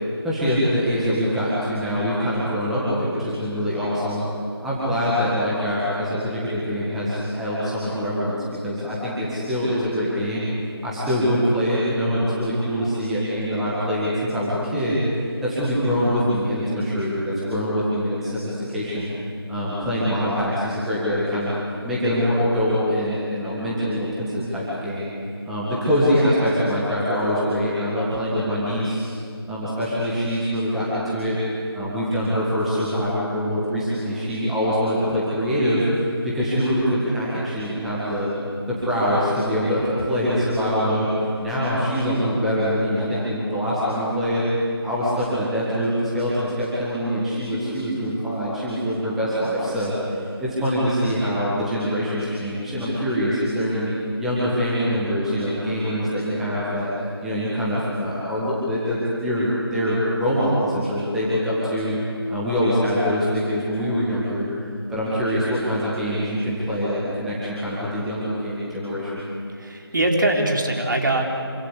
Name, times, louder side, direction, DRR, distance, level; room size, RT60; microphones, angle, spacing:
voice 1, 0.2-4.2 4.6-10.5 10.8-15.0 15.4-19.1 19.5-21.5 21.8-25.1 25.4-29.1 29.5-31.4 31.7-35.8 36.2-38.3 38.7-41.1 41.4-44.5 44.8-53.9 54.2-56.9 57.2-62.0 62.3-64.5 64.9-69.2, equal, ahead, -10 dB, 1.8 m, -24 dB
voice 2, 69.6-71.4, right 1 dB, 50° right, 1 dB, 4.2 m, -22 dB
27.0 x 24.5 x 8.3 m, 2.5 s
figure-of-eight pair, 170°, 14 cm